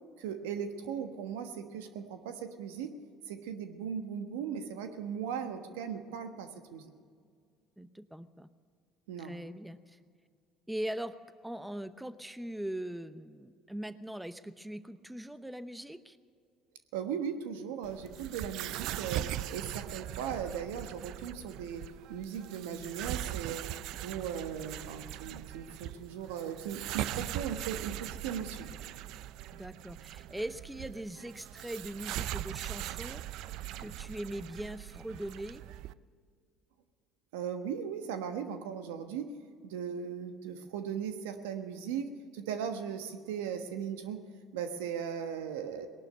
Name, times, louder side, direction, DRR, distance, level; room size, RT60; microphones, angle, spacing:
voice 1, 0.2-2.9 3.3-6.9 9.1-9.4 16.9-21.8 22.1-23.6 23.9-28.7 37.3-39.3 39.6-44.2 44.5-45.9, right 7 dB, 90° right, 7 dB, 1.2 m, -38 dB
voice 2, 7.8-8.5 9.2-10.0 10.7-11.1 11.4-16.2 29.5-33.5 33.8-35.6, right 1 dB, 5° right, 12 dB, 0.7 m, -41 dB
sound 1, 17.8-35.9, right 13 dB, 70° right, 0.4 m, -40 dB
19.0 x 11.5 x 6.5 m, 2.1 s
supercardioid pair, 80°, 0 cm